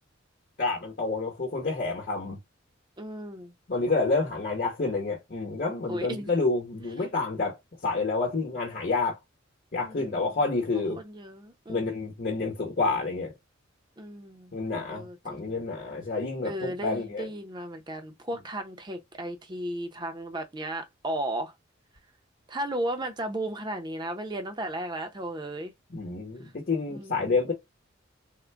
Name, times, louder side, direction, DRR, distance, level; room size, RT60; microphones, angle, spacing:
voice 1, 0.6-2.4 3.7-7.6 7.8-9.2 9.7-11.0 11.7-13.3 14.5-17.3 25.9-27.5, left 3 dB, 45° left, 1.0 m, -29 dB
voice 2, 3.0-3.5 5.9-6.3 9.8-10.4 10.7-12.0 14.0-14.5 14.9-15.6 16.4-21.5 22.5-25.7 26.9-27.4, right 1 dB, 20° right, 0.7 m, -35 dB
3.7 x 2.2 x 3.3 m
head